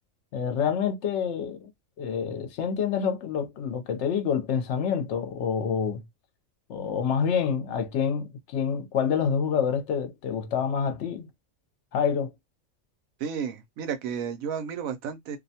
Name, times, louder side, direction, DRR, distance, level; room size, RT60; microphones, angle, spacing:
voice 1, 0.3-1.7 2.0-6.0 6.7-11.3 11.9-12.3, left 7 dB, 65° left, 0.9 m, -27 dB
voice 2, 13.2-15.4, right 7 dB, 85° right, 1.1 m, -32 dB
2.6 x 2.1 x 2.7 m
omnidirectional pair, 1.4 m